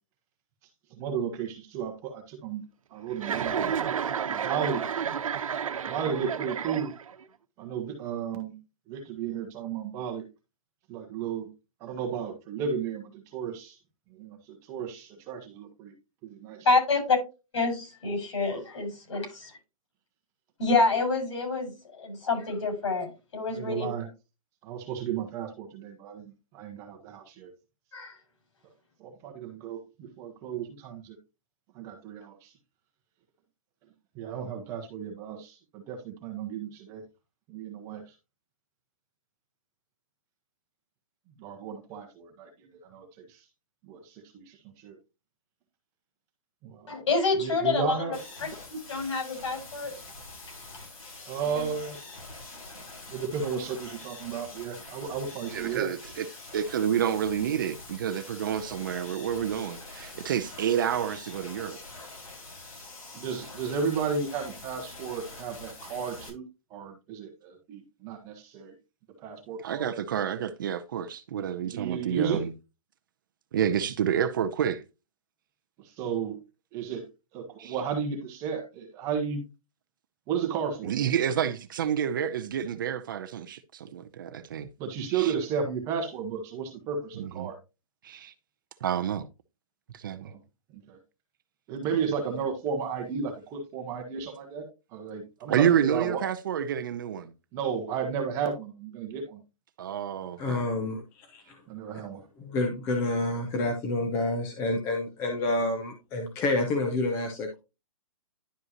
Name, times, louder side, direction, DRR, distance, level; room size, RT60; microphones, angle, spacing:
voice 1, 1.0-2.6 2.9-3.6 4.3-4.8 5.9-6.9 7.6-8.6 8.9-10.2 10.9-11.5 11.8-13.8 14.7-15.9 16.2-16.6 23.5-24.1 24.6-27.5 29.0-31.2 31.7-32.5 34.1-37.0 37.5-38.0 41.4-43.4 43.9-45.0 46.6-47.0 47.4-48.2 51.3-52.0 53.1-55.9 63.1-66.4 66.7-68.7 69.2-69.9 71.6-72.4 75.8-76.4 76.7-77.0 77.3-79.4 80.3-80.9 84.8-87.6 90.2-90.4 90.7-91.0 91.7-94.7 94.9-96.2 97.5-99.4 101.7-102.2, right 6 dB, 15° right, 1.1 m, -33 dB
Chuckle chortle, 3.2-7.2, right 7 dB, 70° right, 1.0 m, -31 dB
voice 2, 16.6-17.2 17.5-19.5 20.6-23.9 27.9-28.1 46.9-49.9 50.7-50.8 51.5-51.7, left 3 dB, 55° left, 5.5 m, -28 dB
sound 1, 48.1-66.3, left 2 dB, 90° left, 5.1 m, -45 dB
voice 3, 55.5-56.3 56.5-61.8 69.6-72.5 73.5-74.8 77.6-77.7 80.8-84.7 85.1-85.3 87.2-87.5 88.0-88.3 88.8-89.3 89.9-90.3 95.5-97.3 99.8-100.6, right 9 dB, 35° right, 0.6 m, -29 dB
voice 4, 100.4-101.6 102.4-107.6, left 2 dB, 15° left, 0.7 m, -29 dB
11.0 x 5.3 x 2.9 m
hypercardioid pair, 170°, 18 cm